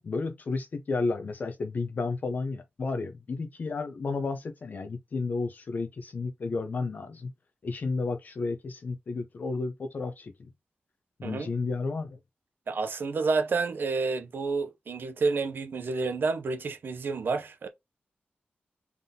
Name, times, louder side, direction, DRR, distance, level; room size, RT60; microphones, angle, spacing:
voice 1, 0.0-7.3 7.6-10.5 11.2-12.2, left 3 dB, 50° left, 0.5 m, -32 dB
voice 2, 12.7-17.7, right 4 dB, 65° right, 0.5 m, -29 dB
3.9 x 3.5 x 2.7 m
wide cardioid pair, 165°, 4 cm